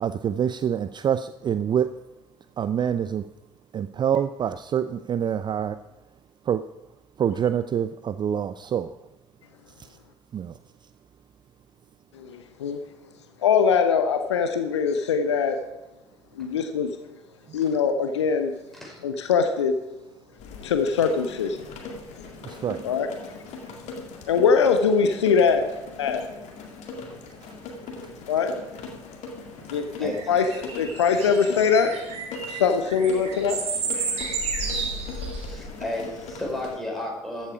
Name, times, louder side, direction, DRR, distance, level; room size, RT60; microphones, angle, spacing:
voice 1, 0.0-1.9 2.6-3.2 3.7-5.8 6.5-6.6 7.2-8.9 10.3-10.5 22.5-22.8, right 8 dB, 30° right, 13 dB, 0.4 m, -26 dB
voice 2, 12.1-12.8 13.4-15.6 16.4-16.9 17.5-18.5 19.0-19.7 20.6-21.6 22.8-23.1 24.3-25.7 26.0-26.2 28.3-28.5 29.7-30.4 30.8-31.9 32.5-33.6, left 6 dB, 75° left, 8 dB, 0.8 m, -22 dB
sound 1, 20.4-36.8, left 3 dB, 55° left, 2.1 m, -39 dB
voice 3, 27.7-28.1 30.0-30.3 35.4-37.5, left 1 dB, ahead, -2 dB, 5.3 m, -33 dB
sound 2, 30.1-35.4, right 5 dB, 45° right, 2.9 m, -32 dB
14.0 x 8.6 x 5.0 m, 1.0 s
figure-of-eight pair, 55°, 15 cm